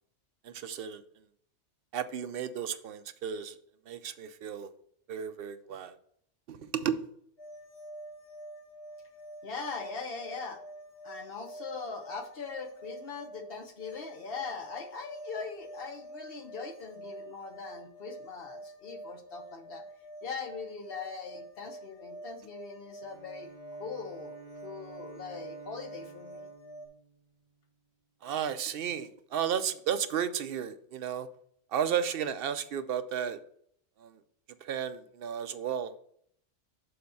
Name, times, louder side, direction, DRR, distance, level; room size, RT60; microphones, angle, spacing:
voice 1, 0.5-1.0 1.9-3.6 3.9-4.7 5.1-5.9 6.5-7.0 28.2-31.3 31.7-33.4 34.0-34.1 34.6-35.9, right 8 dB, 60° right, 0.7 m, -33 dB
sound 1, 7.4-26.9, right 1 dB, 20° left, 1.6 m, -47 dB
voice 2, 9.4-10.6 11.0-19.8 20.2-23.5 23.8-26.5, left 5 dB, 55° left, 1.1 m, -41 dB
Bowed string instrument, 23.0-27.8, right 4 dB, 40° right, 2.2 m, -52 dB
6.9 x 4.2 x 5.4 m
omnidirectional pair, 1.2 m